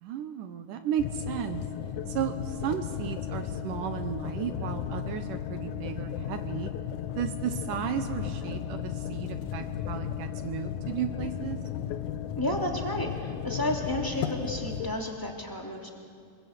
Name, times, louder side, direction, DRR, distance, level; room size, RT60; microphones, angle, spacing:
voice 1, 0.0-1.6 2.1-6.7 7.2-11.6, right 9 dB, 75° right, 8 dB, 2.4 m, -34 dB
sound 1, 1.0-14.9, left 9 dB, 70° left, 2.2 m, -35 dB
voice 2, 12.3-15.9, left 1 dB, 5° left, 0 dB, 2.1 m, -32 dB
26.5 x 21.5 x 8.3 m, 2.2 s
omnidirectional pair, 4.0 m